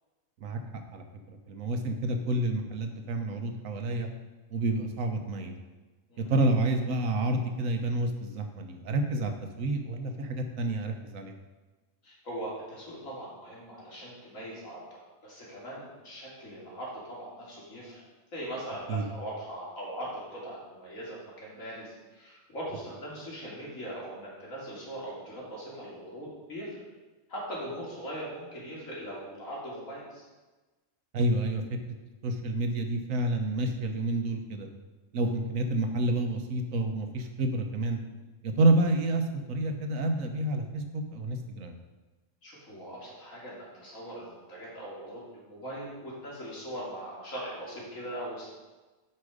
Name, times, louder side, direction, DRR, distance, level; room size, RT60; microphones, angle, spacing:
voice 1, 0.9-4.1 4.5-5.5 6.2-11.3 18.9-19.0 31.1-31.9 32.2-34.7 35.1-38.0 38.4-41.8, right 2 dB, 85° right, 5 dB, 1.4 m, -29 dB
voice 2, 12.0-18.1 18.3-26.8 27.3-30.2 35.2-35.3 42.4-48.5, right 1 dB, 90° left, -6 dB, 3.2 m, -40 dB
8.7 x 5.5 x 4.9 m, 1.2 s
omnidirectional pair, 1.4 m